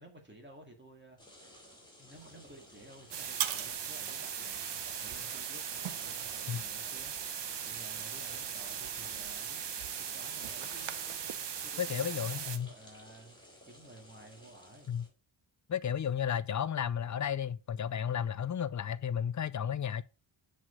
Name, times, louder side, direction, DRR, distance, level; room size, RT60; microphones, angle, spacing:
voice 1, 0.0-9.6 10.0-11.2 11.6-14.9, right 1 dB, 20° right, 2.0 m, -55 dB
sound 1, 1.2-15.1, equal, 10° left, 2.5 m, -56 dB
sound 2, 2.1-11.3, right 11 dB, 85° right, 0.7 m, -45 dB
sound 3, 3.1-12.6, right 8 dB, 60° right, 0.9 m, -39 dB
voice 2, 11.8-12.7 14.9-15.1 15.7-20.0, left 8 dB, 40° left, 0.4 m, -33 dB
5.9 x 4.9 x 5.5 m
wide cardioid pair, 125°, 48 cm